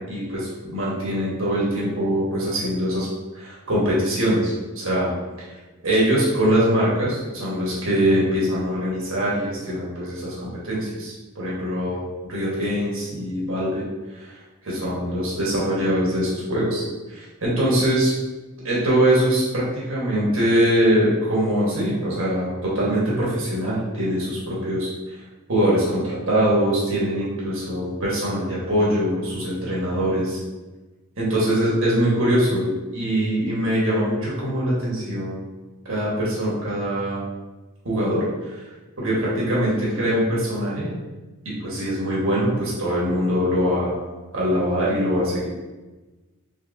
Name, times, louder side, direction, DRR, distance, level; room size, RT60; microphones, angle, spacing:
voice 1, 0.1-3.1 3.3-5.1 5.8-12.0 12.3-13.8 14.1-18.1 18.6-25.2 25.5-30.4 31.2-35.4 35.9-37.2 37.8-38.7 39.0-40.9 41.4-44.0 44.3-45.5, equal, 65° right, -6 dB, 1.3 m, -23 dB
4.4 x 3.4 x 2.6 m, 1.2 s
head